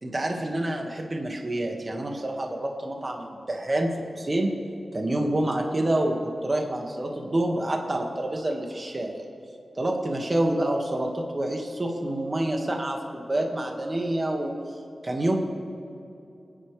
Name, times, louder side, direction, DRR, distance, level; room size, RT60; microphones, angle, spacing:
voice 1, 0.0-4.5 4.9-9.2 9.8-14.6 15.0-15.4, right 1 dB, 35° right, 1 dB, 1.8 m, -27 dB
26.0 x 10.5 x 3.3 m, 2.7 s
wide cardioid pair, 85°, 0 cm